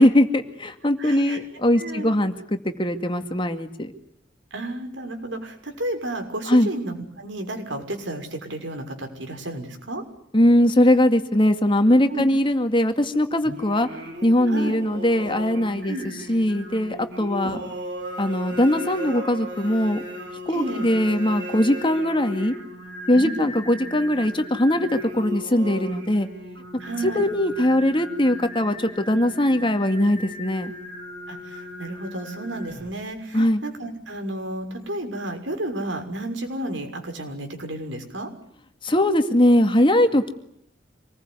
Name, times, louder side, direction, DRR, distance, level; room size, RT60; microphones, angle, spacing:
voice 1, 0.0-3.9 6.5-6.7 10.3-13.9 14.2-17.6 18.2-20.0 20.5-22.5 23.1-26.3 26.7-30.7 33.3-33.6 38.8-40.3, left 1 dB, 25° left, 7 dB, 2.2 m, -21 dB
voice 2, 1.0-1.4 1.7-2.1 4.5-10.0 12.1-12.3 14.5-14.8 15.9-16.1 17.2-17.6 20.5-20.9 23.1-23.6 26.8-27.3 31.3-38.3, right 1 dB, 85° right, 5 dB, 6.3 m, -32 dB
Singing, 13.4-33.1, equal, 65° right, 7.9 m, -37 dB
27.0 x 21.0 x 9.8 m, 0.73 s
head